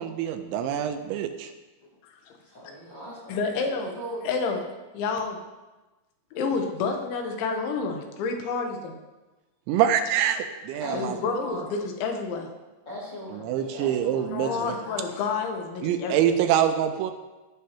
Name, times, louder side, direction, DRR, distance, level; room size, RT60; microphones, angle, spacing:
voice 1, 0.0-1.5 9.7-11.1 13.4-14.7 15.8-17.1, right 10 dB, 85° right, 7 dB, 2.9 m, -25 dB
voice 2, 2.4-4.3 10.8-11.7 12.9-15.3, equal, 35° left, -7 dB, 1.9 m, -39 dB
voice 3, 3.3-3.9 4.2-4.6 4.9-5.4 6.3-9.0 10.9-12.5 14.3-16.4, left 4 dB, 80° left, 3 dB, 3.3 m, -29 dB
16.0 x 6.5 x 2.9 m, 1.1 s
omnidirectional pair, 5.4 m